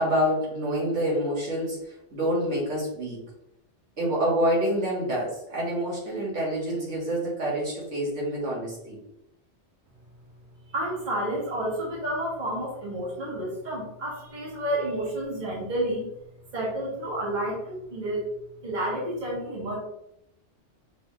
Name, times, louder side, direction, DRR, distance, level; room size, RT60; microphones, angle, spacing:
voice 1, 0.0-3.2 4.0-9.0, equal, 75° right, -5 dB, 1.8 m, -27 dB
voice 2, 10.7-16.1 16.5-18.3 18.6-19.8, right 1 dB, 40° right, -5 dB, 1.5 m, -30 dB
5.9 x 3.4 x 2.4 m, 0.82 s
omnidirectional pair, 1.2 m